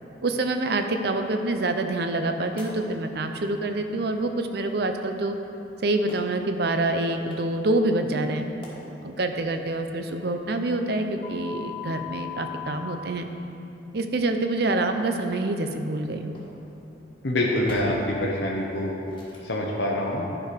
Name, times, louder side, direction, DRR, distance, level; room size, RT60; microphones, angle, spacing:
voice 1, 0.2-5.4 5.8-8.5 9.0-13.3 13.9-16.4, right 2 dB, 55° right, 6 dB, 0.5 m, -26 dB
sound 1, 2.6-2.7 5.0-5.1 6.1-6.2 6.9-7.3 8.3-8.7 11.2-12.7 15.1-15.2 16.3-16.5 17.6-17.8 18.5-18.8 19.1-19.4, left 8 dB, 25° left, 1.4 m, -38 dB
voice 2, 17.2-19.0 19.4-20.3, left 1 dB, 70° left, -2 dB, 0.9 m, -25 dB
11.0 x 4.7 x 5.1 m, 3.0 s
head